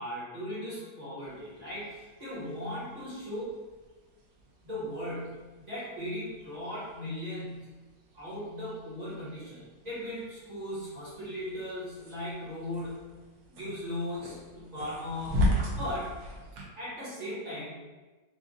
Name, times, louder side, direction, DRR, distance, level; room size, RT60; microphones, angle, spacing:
voice 1, 0.0-3.6 4.6-7.7 8.1-13.1 13.5-15.4 15.7-16.1 16.8-17.8, left 1 dB, 25° right, -8 dB, 1.2 m, -38 dB
sound 1, 1.2-16.6, equal, 80° right, 1.5 m, -38 dB
3.8 x 2.5 x 3.8 m, 1.2 s
omnidirectional pair, 2.0 m